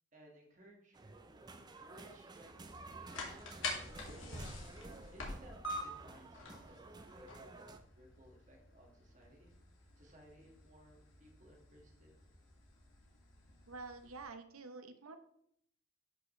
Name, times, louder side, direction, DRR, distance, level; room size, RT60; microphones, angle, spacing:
voice 1, 0.1-1.2 1.8-4.4 5.1-9.5 10.0-12.1, equal, 35° right, 0 dB, 1.8 m, -61 dB
sound 1, 0.9-7.8, right 3 dB, 20° right, 0.4 m, -53 dB
sound 2, 2.5-14.2, left 2 dB, 65° left, 2.0 m, -48 dB
voice 2, 13.7-15.2, right 3 dB, 85° right, 8 dB, 0.9 m, -48 dB
12.0 x 5.8 x 3.2 m, 0.72 s
head